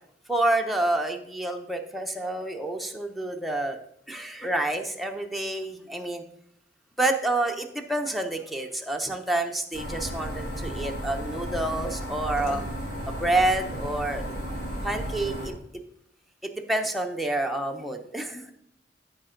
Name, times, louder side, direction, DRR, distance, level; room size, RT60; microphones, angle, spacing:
voice 1, 0.3-3.8 4.1-6.2 7.0-12.6 13.1-14.5 14.8-15.5 16.7-18.5, right 2 dB, ahead, 3 dB, 0.7 m, -28 dB
sound 1, 9.7-15.5, equal, 70° left, 2.4 m, -33 dB
13.0 x 5.1 x 3.8 m, 0.72 s
head